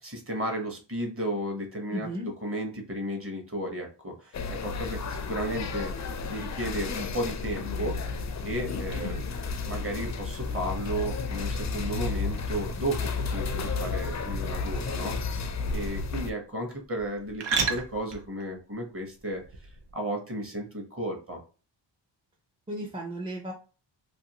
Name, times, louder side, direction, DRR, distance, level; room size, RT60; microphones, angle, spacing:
voice 1, 0.0-8.2 8.4-9.2 9.6-15.4 15.7-21.4, right 1 dB, 30° right, 2 dB, 0.9 m, -34 dB
voice 2, 1.9-2.3 22.7-23.5, equal, 15° right, -1 dB, 0.5 m, -35 dB
sound 1, 4.3-16.3, left 4 dB, 40° left, 0.4 m, -32 dB
sound 2, 4.9-19.9, right 5 dB, 70° right, 0.6 m, -40 dB
2.6 x 2.4 x 2.8 m, 0.34 s
cardioid pair, 95°, 45 cm